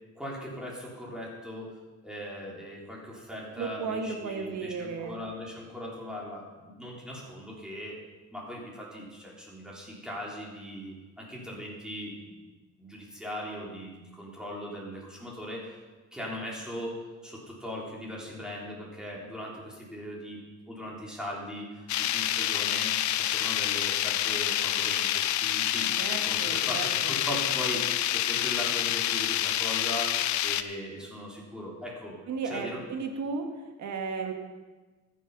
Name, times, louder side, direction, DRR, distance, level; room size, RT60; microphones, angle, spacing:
voice 1, 0.2-1.7 2.0-8.0 8.3-12.3 12.8-15.8 16.1-20.4 20.7-32.2 32.4-32.8, equal, ahead, -4 dB, 3.5 m, -39 dB
voice 2, 3.6-5.2 26.0-27.2 32.3-33.5 33.8-34.3, right 5 dB, 70° right, 4 dB, 1.8 m, -34 dB
sound 1, 21.9-30.6, left 12 dB, 70° left, 0.6 m, -28 dB
14.0 x 7.6 x 5.4 m, 1.2 s
cardioid pair, 90°, 30 cm